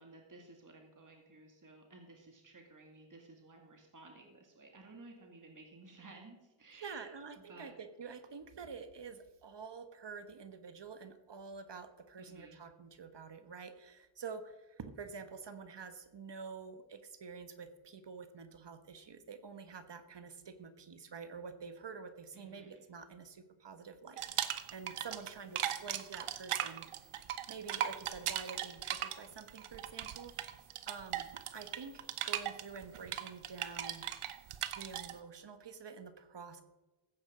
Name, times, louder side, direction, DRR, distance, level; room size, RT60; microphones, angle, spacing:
voice 1, 0.0-7.1 7.5-7.7 12.2-12.6 22.3-22.8, right 2 dB, 40° right, 2 dB, 2.2 m, -56 dB
voice 2, 6.7-26.9 27.5-30.3 30.9-34.0 34.8-36.6, right 5 dB, 55° right, 9 dB, 1.3 m, -48 dB
sound 1, 24.2-25.3 25.6-35.1, right 11 dB, 80° right, 0.9 m, -38 dB
14.5 x 8.7 x 5.0 m, 1.1 s
cardioid pair, 45°, 50 cm